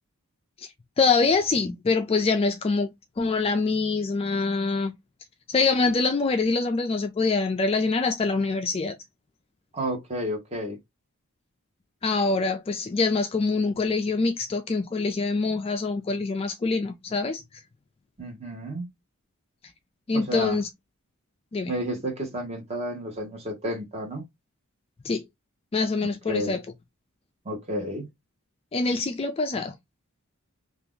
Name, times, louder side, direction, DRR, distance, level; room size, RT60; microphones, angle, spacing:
voice 1, 1.0-4.9 5.5-9.0 12.0-17.4 20.1-20.7 21.5-21.7 25.0-25.2 25.7-26.6 28.7-29.7, left 4 dB, 25° left, 0.3 m, -25 dB
voice 2, 9.7-10.8 18.2-18.9 20.1-20.6 21.7-24.3 26.3-26.6 27.4-28.1, equal, 30° right, 1.1 m, -31 dB
2.8 x 2.4 x 3.6 m
head